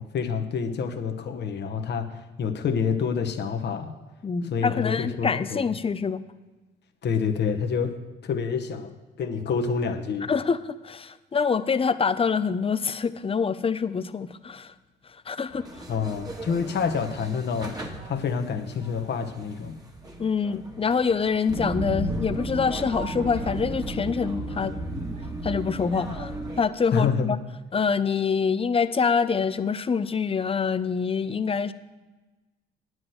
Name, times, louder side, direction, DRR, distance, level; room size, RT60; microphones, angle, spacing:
voice 1, 0.0-3.9 4.4-5.6 7.0-7.9 8.2-10.3 15.9-19.8 26.9-27.4, left 6 dB, 60° left, 5 dB, 1.2 m, -28 dB
voice 2, 4.2-6.2 10.3-14.7 15.3-15.6 20.2-24.7 25.4-27.4 27.7-31.7, left 5 dB, 30° left, 13 dB, 0.6 m, -25 dB
sound 1, 12.7-12.8 16.0-16.1 18.2-18.3 20.9-21.2 22.5-23.5 24.5-24.7 25.1-25.3, right 1 dB, 35° right, 0.9 m, -43 dB
sound 2, 15.5-26.6, right 2 dB, 20° right, 1.7 m, -35 dB
9.6 x 6.2 x 7.9 m, 1.2 s
cardioid pair, 90°, 20 cm